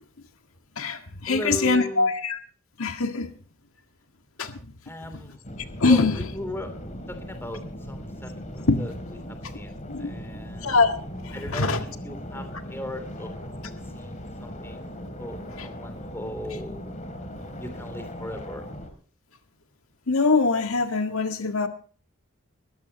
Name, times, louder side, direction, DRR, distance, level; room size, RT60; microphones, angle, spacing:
voice 1, 0.8-2.4 2.8-3.3 4.4-4.6 5.8-6.2 8.6-8.8 9.9-10.1 10.6-10.9 11.2-11.8 15.6-15.7 20.1-21.7, left 3 dB, 75° left, 6 dB, 1.8 m, -23 dB
voice 2, 1.3-2.1 4.9-5.4 5.9-6.7 7.1-7.6 7.9-8.9 9.3-10.7 11.3-13.3 13.9-14.8 15.2-16.9 17.6-18.6, left 1 dB, 10° left, 7 dB, 3.2 m, -37 dB
sound 1, 5.4-18.9, equal, 35° left, 3.1 m, -38 dB
22.0 x 14.5 x 3.0 m, 0.43 s
head